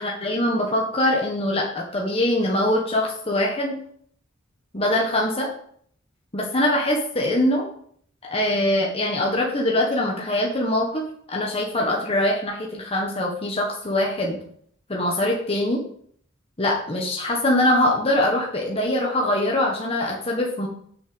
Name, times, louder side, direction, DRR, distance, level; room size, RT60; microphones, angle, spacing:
voice 1, 0.0-3.8 4.7-5.5 6.3-7.7 8.3-11.0 11.3-14.4 14.9-15.8 16.6-20.7, left 1 dB, 25° left, -2 dB, 1.4 m, -23 dB
6.5 x 6.4 x 7.2 m, 0.63 s
head